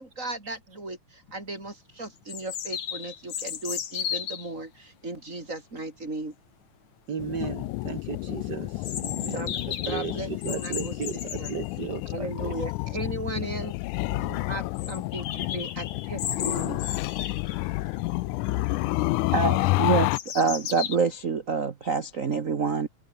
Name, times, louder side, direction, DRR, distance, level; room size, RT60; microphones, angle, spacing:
voice 1, 0.0-6.3 9.3-9.5 9.9-10.9 11.4-11.5 12.1-13.7 14.4-15.3 15.5-16.8, right 2 dB, 25° right, 4.6 m, -36 dB
sound 1, 1.3-1.4 2.3-4.5 8.8-11.6 13.2-13.3 13.6-13.7 14.0-14.1 14.8-18.0 18.4-18.9 19.4-21.0, left 9 dB, 70° left, 3.4 m, -35 dB
voice 2, 7.1-9.5 9.9-12.5 14.1-14.5 19.2-19.3, right 6 dB, 45° right, 1.4 m, -35 dB
sound 2, 7.2-20.2, left 21 dB, 90° left, 2.1 m, -29 dB
voice 3, 19.3-22.9, right 5 dB, 80° right, 0.7 m, -26 dB
omnidirectional pair, 3.4 m